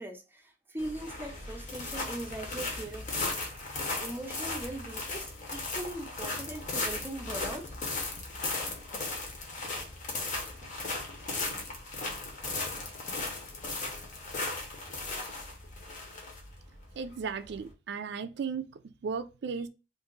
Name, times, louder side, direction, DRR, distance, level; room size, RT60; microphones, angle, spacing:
voice 1, 0.0-3.5 4.0-7.8, right 1 dB, 10° right, 0.5 m, -40 dB
sound 1, 0.8-17.7, left 3 dB, 45° left, 0.8 m, -37 dB
voice 2, 17.0-19.7, right 5 dB, 65° right, 0.4 m, -36 dB
2.8 x 2.5 x 3.8 m
head